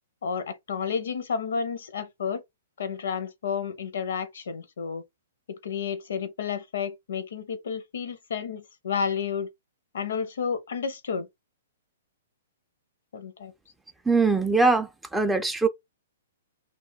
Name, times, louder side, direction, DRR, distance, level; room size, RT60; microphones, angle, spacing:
voice 1, 0.2-2.4 2.8-5.0 5.5-9.5 9.9-11.3 13.1-13.5, left 6 dB, 70° left, 0.6 m, -31 dB
voice 2, 14.1-15.7, right 3 dB, 5° right, 0.3 m, -22 dB
2.3 x 2.1 x 3.7 m
hypercardioid pair, 120°, 0 cm